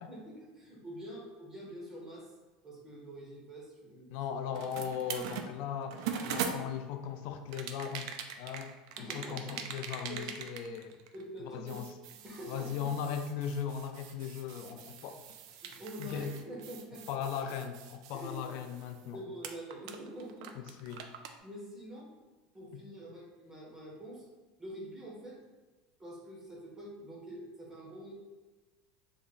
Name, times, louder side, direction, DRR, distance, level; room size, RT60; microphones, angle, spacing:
voice 1, 0.1-2.3 2.6-4.1 9.0-9.6 10.1-10.3 11.1-11.9 12.2-12.9 15.6-17.1 18.1-18.3 19.1-20.5 21.4-22.1 22.5-24.2 24.6-25.4 26.0-28.1, right 1 dB, 15° right, -3 dB, 0.6 m, -46 dB
voice 2, 4.1-8.7 9.1-11.0 11.4-11.9 12.5-15.2 16.0-16.4 17.1-19.2 20.5-21.1 22.7-22.8, left 8 dB, 55° left, 7 dB, 0.3 m, -38 dB
sound 1, 4.5-7.0 7.5-11.4 11.7-19.1 19.4-21.4, right 7 dB, 70° right, 0.3 m, -42 dB
3.4 x 2.0 x 3.9 m, 1.3 s
supercardioid pair, 155°, 3 cm